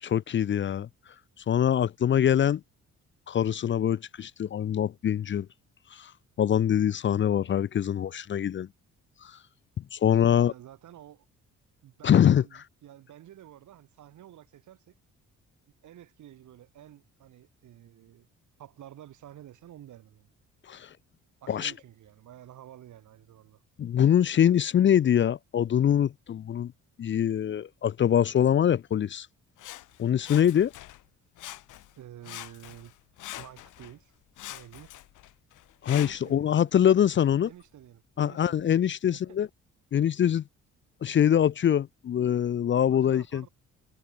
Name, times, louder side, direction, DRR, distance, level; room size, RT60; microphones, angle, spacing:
voice 1, 0.0-0.9 1.5-2.6 3.3-5.5 5.9-6.1 6.4-8.7 9.2-9.4 9.9-10.5 12.0-12.4 20.7-20.9 21.5-21.7 23.8-26.7 27.0-29.3 30.0-30.7 35.8-37.5 38.2-39.5 39.9-40.4 41.0-43.4, left 9 dB, 40° left, 0.5 m, -24 dB
voice 2, 10.1-11.3 11.8-14.9 15.8-18.3 18.6-20.3 21.4-23.6 32.0-32.9 33.3-34.1 34.5-34.9 36.0-36.7 37.4-38.7 39.0-39.2 42.9-43.5, right 12 dB, 75° right, 6.7 m, -50 dB
Sawing, 29.6-31.1 31.4-32.0 32.2-33.9 34.4-36.4 37.0-37.1, left 16 dB, 90° left, 3.2 m, -44 dB
cardioid pair, 90°, 30 cm